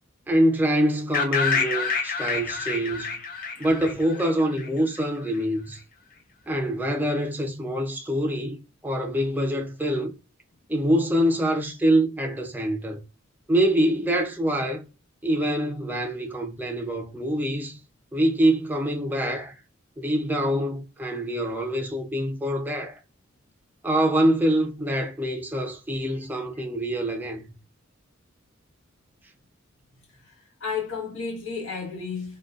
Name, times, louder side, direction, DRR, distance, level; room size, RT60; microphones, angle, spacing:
voice 1, 0.3-3.2 3.6-5.8 6.5-8.6 8.8-10.1 10.7-13.0 13.5-14.8 15.2-17.8 18.1-19.6 20.0-23.0 23.8-27.4, right 1 dB, 10° right, 0.4 m, -25 dB
sound 1, 1.1-5.0, left 5 dB, 45° left, 0.6 m, -28 dB
voice 2, 30.6-32.4, left 5 dB, 75° left, 1.0 m, -32 dB
3.8 x 2.2 x 2.4 m
head